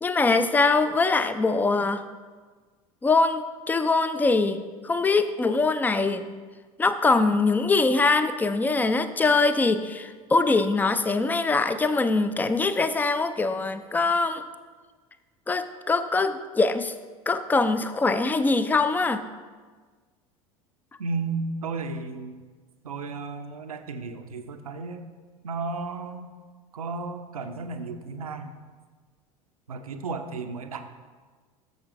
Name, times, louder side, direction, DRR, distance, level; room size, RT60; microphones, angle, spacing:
voice 1, 0.0-2.0 3.0-6.3 6.8-14.5 15.5-16.9 17.3-19.3, left 3 dB, 10° left, 12 dB, 0.4 m, -23 dB
voice 2, 21.0-22.4 22.8-25.0 25.4-26.3 26.7-28.5 29.7-30.8, right 4 dB, 75° right, 7 dB, 0.6 m, -33 dB
13.0 x 6.7 x 2.6 m, 1.4 s
figure-of-eight pair, 75°, 19 cm